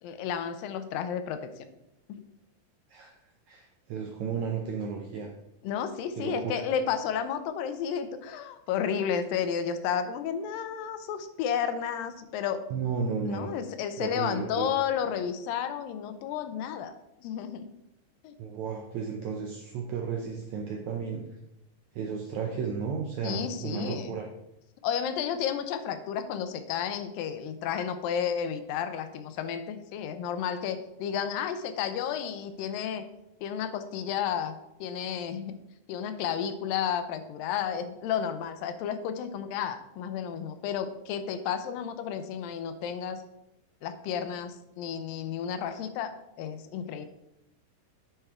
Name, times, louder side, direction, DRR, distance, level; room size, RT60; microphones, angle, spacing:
voice 1, 0.0-1.7 2.1-2.2 5.6-12.6 13.3-16.9 17.2-17.7 18.2-18.3 23.2-24.2 24.8-33.1 33.4-35.6 35.9-43.2 43.8-47.1, left 8 dB, 80° left, 9 dB, 2.3 m, -32 dB
voice 2, 3.5-5.3 6.2-6.6 12.7-13.5 14.0-14.7 18.4-21.2 21.9-24.3, right 6 dB, 80° right, 2 dB, 1.6 m, -33 dB
8.6 x 5.7 x 3.5 m, 0.86 s
omnidirectional pair, 4.1 m